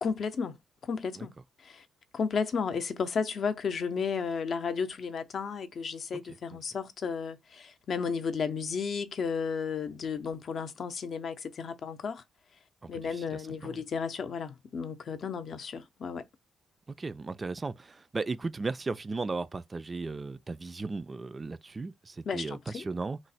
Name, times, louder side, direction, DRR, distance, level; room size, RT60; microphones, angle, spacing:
voice 1, 0.0-1.3 1.6-1.9 2.1-12.2 12.9-16.3 22.3-22.8, left 5 dB, 55° left, 0.5 m, -33 dB
voice 2, 12.8-13.8 16.9-23.2, right 3 dB, 30° right, 0.3 m, -36 dB
3.1 x 2.0 x 4.0 m
cardioid pair, 85°, 0 cm